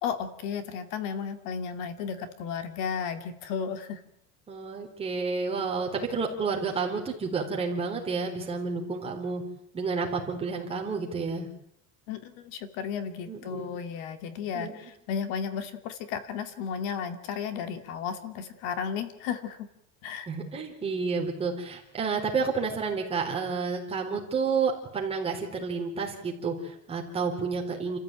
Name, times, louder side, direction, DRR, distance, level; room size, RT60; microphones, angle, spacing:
voice 1, 0.0-4.0 12.1-19.7 20.0-20.3, left 7 dB, 65° left, 9 dB, 2.6 m, -34 dB
voice 2, 4.5-9.4 9.7-11.5 13.3-13.8 14.5-14.9 20.3-28.0, right 4 dB, 15° right, 0 dB, 4.2 m, -30 dB
29.5 x 14.5 x 9.1 m, 0.75 s
cardioid pair, 175°, 34 cm